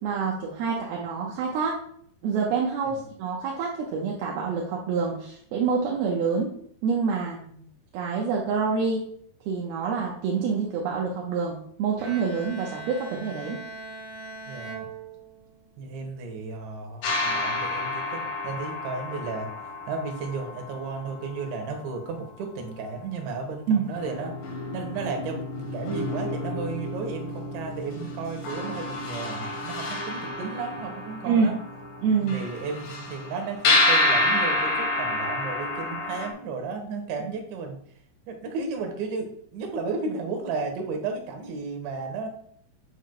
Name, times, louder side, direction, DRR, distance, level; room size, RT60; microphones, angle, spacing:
voice 1, 0.0-1.8 2.2-6.5 6.8-7.4 7.9-9.1 9.5-13.6 23.7-23.9 31.3-31.5 32.0-32.4, right 5 dB, 75° right, -2 dB, 2.7 m, -26 dB
Bowed string instrument, 12.0-15.7, right 2 dB, 50° right, 2.7 m, -40 dB
voice 2, 14.5-14.9 15.8-19.5 19.9-24.4 24.7-31.6 32.2-37.8 38.3-42.3, right 4 dB, 90° right, 3 dB, 3.7 m, -34 dB
sound 1, 17.0-21.9 23.4-23.5 23.9-36.3, left 2 dB, 65° left, 2.5 m, -29 dB
9.1 x 8.0 x 2.3 m, 0.63 s
omnidirectional pair, 5.1 m